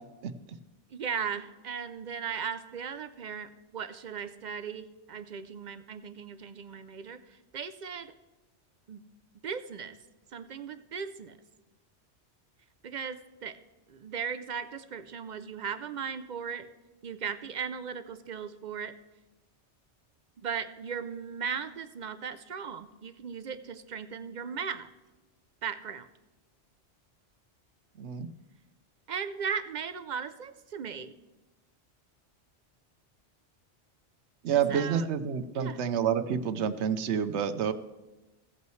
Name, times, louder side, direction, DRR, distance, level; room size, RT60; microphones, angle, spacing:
voice 1, 0.9-8.1 8.9-9.0 9.4-10.0 10.3-11.4 12.8-13.6 13.9-16.7 17.0-18.9 20.4-24.9 25.6-26.1 29.1-31.1 34.5-35.1 35.5-35.8, right 6 dB, 55° right, 11 dB, 0.5 m, -37 dB
voice 2, 34.4-37.7, right 8 dB, 80° right, 11 dB, 0.9 m, -28 dB
16.0 x 8.3 x 3.1 m, 1.1 s
omnidirectional pair, 1.2 m